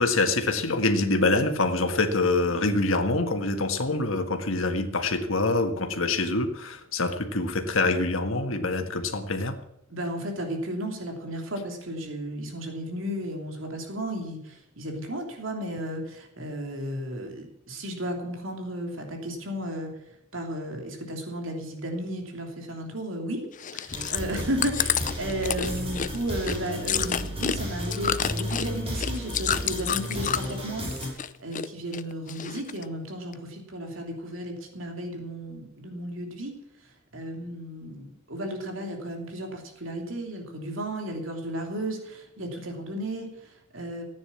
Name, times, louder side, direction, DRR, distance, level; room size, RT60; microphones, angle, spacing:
voice 1, 0.0-9.6, left 2 dB, 75° left, 6 dB, 1.8 m, -25 dB
voice 2, 9.9-20.0 20.3-23.4 23.7-30.8 31.1-36.5 37.1-44.0, right 1 dB, 70° right, 2 dB, 3.1 m, -34 dB
Chewing mastication, 23.5-30.6 30.9-31.7 31.9-32.8 33.3-33.4, left 8 dB, 40° left, 0.6 m, -29 dB
sound 1, 23.9-31.1, equal, 30° right, 5.7 m, -33 dB
15.0 x 9.7 x 7.2 m, 0.81 s
head